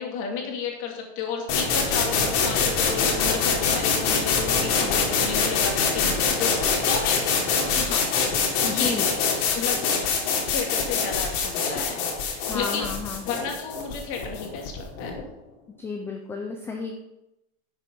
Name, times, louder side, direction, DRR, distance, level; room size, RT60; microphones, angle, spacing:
voice 1, 0.0-8.1 8.6-9.3 9.5-9.9 10.5-12.9 13.2-15.2, left 6 dB, 40° left, 2 dB, 2.4 m, -33 dB
sound 1, 1.5-15.2, left 5 dB, 60° left, 3.1 m, -24 dB
voice 2, 8.7-9.1 11.6-11.7 12.4-13.3 15.8-17.0, left 4 dB, 5° left, 3 dB, 0.4 m, -32 dB
11.0 x 6.9 x 5.3 m, 0.90 s
supercardioid pair, 170°, 34 cm